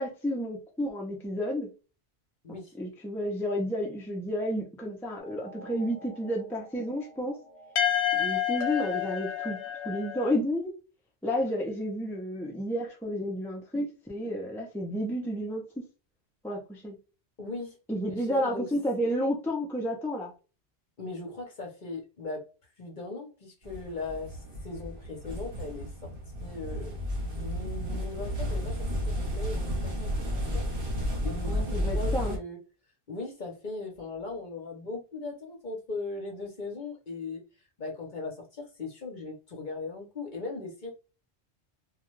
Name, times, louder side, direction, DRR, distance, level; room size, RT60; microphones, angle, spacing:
voice 1, 0.0-1.7 2.8-7.3 8.1-9.6 9.8-10.7 11.2-15.6 16.4-17.0 17.9-20.3 31.4-32.4, equal, 5° left, 0.5 m, -31 dB
sound 1, 5.2-10.3, left 10 dB, 75° left, 0.9 m, -31 dB
voice 2, 17.4-17.8 18.1-18.7 21.0-22.4 22.8-24.4 24.6-25.9 26.4-30.6 31.2-32.6 33.1-37.4 37.8-40.9, left 3 dB, 50° left, 0.9 m, -39 dB
sound 2, 23.6-32.4, equal, 55° right, 1.1 m, -32 dB
2.4 x 2.3 x 3.0 m
omnidirectional pair, 1.1 m